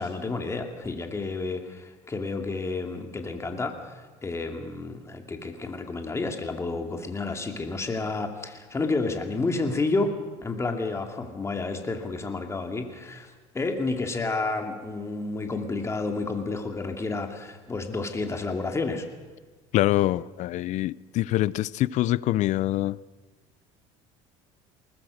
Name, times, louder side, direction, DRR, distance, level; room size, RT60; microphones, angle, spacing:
voice 1, 0.0-10.1 10.4-19.1, left 3 dB, 20° left, 4 dB, 2.6 m, -30 dB
voice 2, 19.7-23.0, left 15 dB, 60° left, 21 dB, 0.6 m, -25 dB
21.5 x 19.5 x 6.6 m, 1.3 s
cardioid pair, 110°, 14 cm